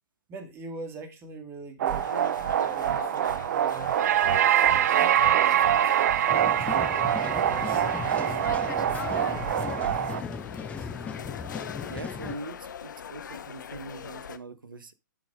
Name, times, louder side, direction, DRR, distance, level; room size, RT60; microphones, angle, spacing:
voice 1, 0.3-6.7 7.2-11.1, right 3 dB, 20° right, 2.1 m, -45 dB
sound 1, 1.8-14.4, left 8 dB, 65° left, 0.9 m, -40 dB
sound 2, 1.8-10.2, right 11 dB, 50° right, 0.5 m, -24 dB
sound 3, 6.3-12.4, left 6 dB, 10° left, 0.6 m, -37 dB
voice 2, 11.9-14.9, right 2 dB, 80° right, 1.1 m, -42 dB
12.0 x 5.2 x 3.6 m
figure-of-eight pair, 120°, 11 cm